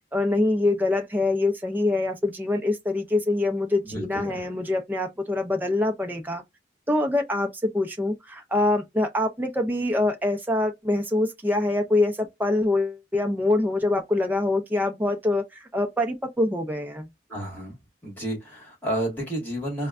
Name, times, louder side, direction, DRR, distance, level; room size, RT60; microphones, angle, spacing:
voice 1, 0.1-6.4 6.9-17.1, left 2 dB, 10° right, 0.4 m, -25 dB
voice 2, 3.8-4.4 17.3-17.8 18.0-19.9, right 1 dB, 10° left, 1.7 m, -31 dB
4.3 x 2.1 x 2.4 m
head